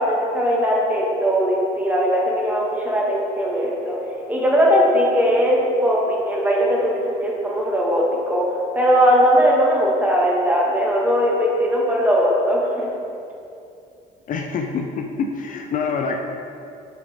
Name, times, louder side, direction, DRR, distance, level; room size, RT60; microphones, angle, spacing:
voice 1, 0.0-4.0 4.3-8.4 8.7-12.9, equal, 10° right, -4 dB, 1.4 m, -19 dB
voice 2, 14.3-16.2, left 5 dB, 50° left, 3 dB, 0.6 m, -26 dB
7.0 x 5.1 x 3.6 m, 2.6 s
cardioid pair, 110°, 17 cm